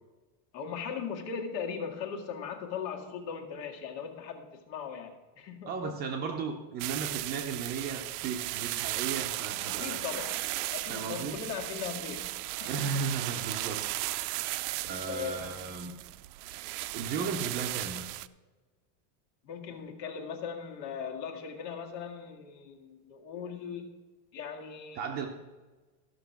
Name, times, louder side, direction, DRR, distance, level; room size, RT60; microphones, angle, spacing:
voice 1, 0.5-5.8 9.7-10.4 10.7-12.3 12.6-13.0 14.7-14.8 15.1-15.4 19.4-24.0 24.3-25.3, left 6 dB, 85° left, 2 dB, 2.0 m, -39 dB
voice 2, 5.7-10.0 10.9-11.4 12.6-13.8 14.8-16.0 16.9-18.1 25.0-25.3, right 5 dB, 20° right, 4 dB, 0.5 m, -35 dB
sound 1, 6.8-18.3, right 18 dB, 70° right, 0.5 m, -36 dB
14.0 x 6.0 x 5.8 m, 1.3 s
supercardioid pair, 175°, 49 cm